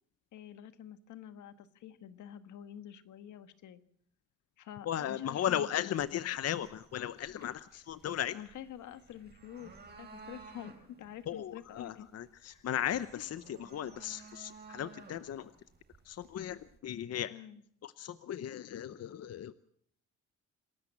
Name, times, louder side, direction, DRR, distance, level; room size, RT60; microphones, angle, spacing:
voice 1, 0.3-3.8 4.6-6.4 8.3-12.1 12.4-12.7 14.1-14.3 17.3-17.6, left 10 dB, 75° left, 11 dB, 1.5 m, -48 dB
voice 2, 4.9-8.4 11.3-15.5 16.1-17.3 17.8-19.5, left 10 dB, 55° left, 14 dB, 0.8 m, -36 dB
sound 1, 6.0-16.8, right 4 dB, 35° right, 4.9 m, -56 dB
27.0 x 13.0 x 7.3 m, 0.66 s
cardioid pair, 90°, 30 cm